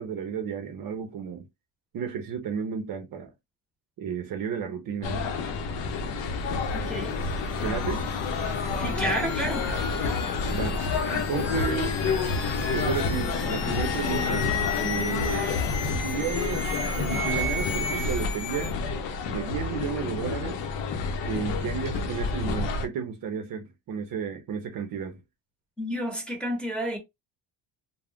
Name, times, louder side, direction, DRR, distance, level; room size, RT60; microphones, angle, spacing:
voice 1, 0.0-1.5 1.9-3.3 4.0-5.3 7.6-8.1 10.5-10.8 11.1-12.0 12.7-14.5 14.8-15.5 15.9-16.7 16.9-18.7 19.3-20.6 21.2-25.2, right 7 dB, 50° right, 0.6 m, -33 dB
sound 1, 5.0-22.9, left 4 dB, 80° left, 0.7 m, -29 dB
sound 2, 6.5-18.7, left 2 dB, 35° left, 1.1 m, -36 dB
voice 2, 6.7-7.2 8.8-9.7 15.3-15.4 25.8-27.0, right 1 dB, ahead, 1.0 m, -31 dB
2.4 x 2.1 x 3.4 m
cardioid pair, 130°, 43 cm